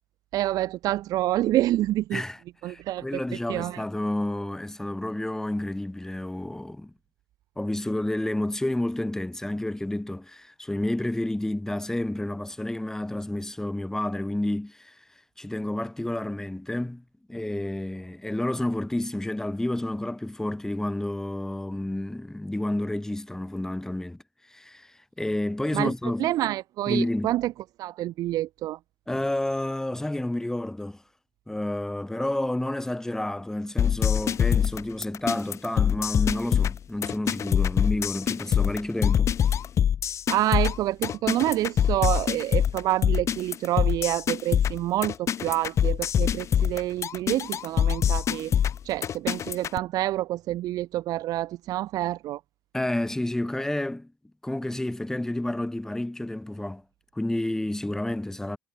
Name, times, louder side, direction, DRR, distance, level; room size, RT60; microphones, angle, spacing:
voice 1, 0.3-2.2 2.6-3.2 3.5-3.8 25.7-25.9 26.2-27.5 27.8-28.8 40.3-48.5 48.8-52.4, right 15 dB, 65° right, 4.8 m, -27 dB
voice 2, 2.1-6.9 7.6-14.9 15.4-24.2 24.5-26.3 26.9-27.3 29.1-31.0 31.5-39.3 52.7-54.1 54.4-56.8 57.1-58.6, left 1 dB, 5° left, 3.2 m, -30 dB
sound 1, 33.8-49.8, left 9 dB, 45° left, 1.4 m, -24 dB
supercardioid pair, 85°, 7 cm